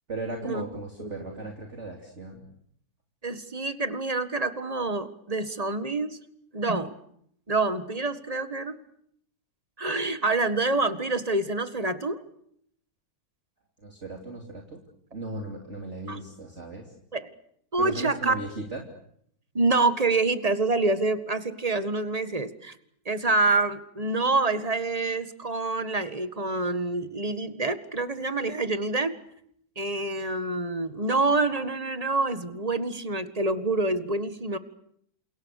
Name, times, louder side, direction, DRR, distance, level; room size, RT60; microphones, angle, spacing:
voice 1, 0.1-2.5 13.8-14.8 15.1-16.9 17.8-18.8, right 2 dB, 40° right, 1 dB, 3.4 m, -37 dB
voice 2, 3.2-6.2 6.5-6.9 7.5-8.8 9.8-12.2 16.1-16.2 17.1-17.3 17.7-18.3 19.5-22.8 23.0-29.1 29.7-34.6, right 3 dB, 20° right, 11 dB, 1.6 m, -27 dB
29.5 x 28.0 x 6.6 m, 0.70 s
omnidirectional pair, 1.9 m